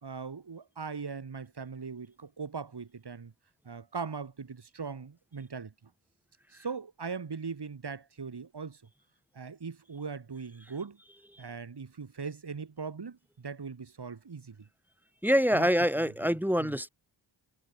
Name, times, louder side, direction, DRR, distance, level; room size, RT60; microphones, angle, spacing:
voice 1, 0.0-3.3 3.6-5.7 6.5-8.8 9.3-11.0 11.4-14.7 15.5-15.7 15.9-16.3 16.6-16.8, right 5 dB, 55° right, 5.0 m, -40 dB
voice 2, 15.2-16.9, equal, 5° right, 1.2 m, -25 dB
cardioid pair, 55°, 48 cm